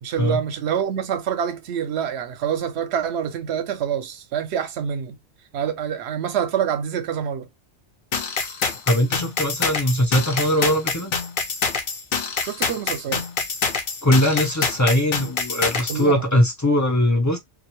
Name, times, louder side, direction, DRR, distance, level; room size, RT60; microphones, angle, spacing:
voice 1, 0.0-5.2 5.5-7.5 12.4-13.3 15.9-16.2, right 8 dB, 70° right, 0.9 m, -26 dB
sound 1, 8.1-16.0, left 5 dB, 55° left, 0.7 m, -26 dB
voice 2, 8.9-11.1 14.0-17.4, left 1 dB, 25° left, 0.3 m, -20 dB
2.2 x 2.0 x 2.8 m
omnidirectional pair, 1.2 m